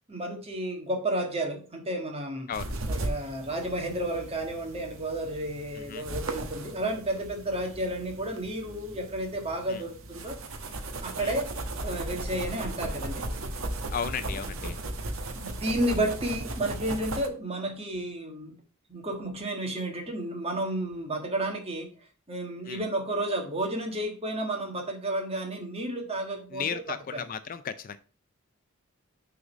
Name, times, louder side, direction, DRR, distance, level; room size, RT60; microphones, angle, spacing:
voice 1, 0.1-2.5 2.9-10.4 11.0-11.5 11.8-13.3 15.3-18.5 18.9-21.9 22.3-26.8 27.1-27.2, right 1 dB, 30° right, 3 dB, 1.5 m, -32 dB
sound 1, 2.5-17.3, right 2 dB, 70° right, 1.1 m, -37 dB
voice 2, 5.7-6.1 9.7-9.9 11.2-11.4 13.9-14.8 22.6-22.8 26.5-28.0, left 7 dB, 40° left, 12 dB, 0.4 m, -35 dB
6.5 x 3.9 x 6.1 m, 0.38 s
head